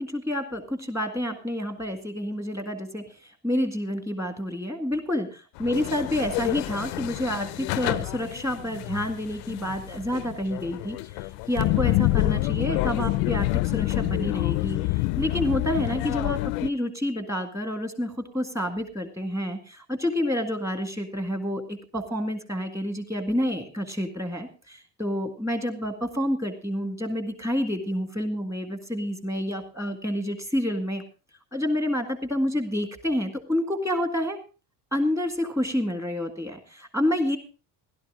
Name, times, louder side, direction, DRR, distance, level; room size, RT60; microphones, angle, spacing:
voice 1, 0.0-5.3 5.6-31.0 31.5-34.4 34.9-37.4, left 1 dB, 5° right, 7 dB, 1.9 m, -29 dB
sound 1, 5.6-16.7, left 20 dB, 90° left, 0.6 m, -27 dB
16.0 x 12.0 x 3.7 m, 0.32 s
cardioid pair, 160°, 40 cm